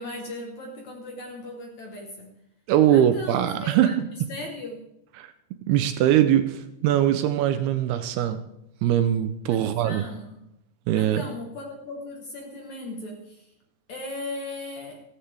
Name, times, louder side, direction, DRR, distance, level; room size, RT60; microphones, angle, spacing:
voice 1, 0.0-2.3 2.9-3.9 4.3-4.8 9.5-10.4 10.9-13.4 13.9-15.0, left 2 dB, 60° left, 2 dB, 2.0 m, -37 dB
voice 2, 2.7-4.1 5.2-5.3 5.7-8.4 8.8-10.0 10.9-11.3, right 11 dB, 80° right, 10 dB, 2.4 m, -22 dB
15.5 x 14.0 x 3.4 m, 0.84 s
omnidirectional pair, 4.8 m